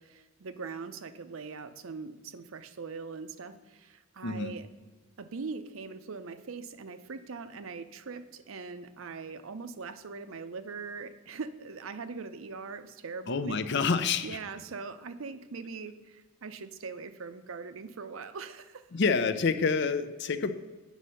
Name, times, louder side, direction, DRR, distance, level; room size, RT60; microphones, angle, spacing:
voice 1, 0.0-4.7 5.2-13.6 14.2-18.8, right 4 dB, 75° right, 11 dB, 0.6 m, -41 dB
voice 2, 13.3-14.4 18.9-20.5, left 5 dB, 55° left, 11 dB, 0.6 m, -27 dB
8.2 x 6.2 x 5.6 m, 1.3 s
head